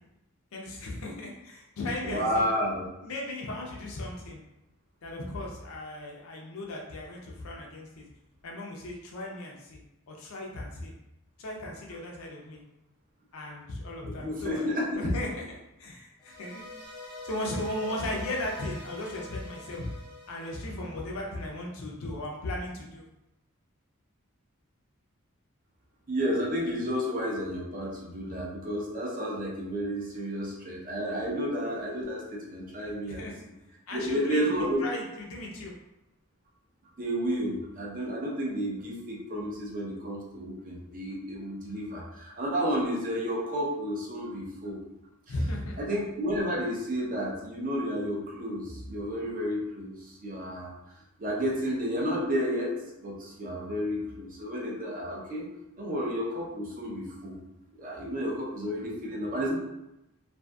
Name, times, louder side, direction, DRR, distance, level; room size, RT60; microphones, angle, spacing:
voice 1, 0.5-2.4 3.0-4.4 5.0-8.1 8.4-9.8 10.1-10.9 11.4-12.6 13.3-16.6 17.2-19.9 20.3-23.0 32.8-33.3 33.9-35.7 45.3-45.7, left 1 dB, 75° left, -1 dB, 0.5 m, -36 dB
voice 2, 2.0-2.8 14.1-15.0 26.1-33.3 33.9-34.8 37.0-44.8 45.8-50.7 51.2-55.5 55.8-57.4 57.8-59.5, equal, 40° right, -3 dB, 0.6 m, -31 dB
sound 1, 16.2-21.5, left 2 dB, 5° left, 0.7 m, -45 dB
2.5 x 2.5 x 2.2 m, 0.93 s
head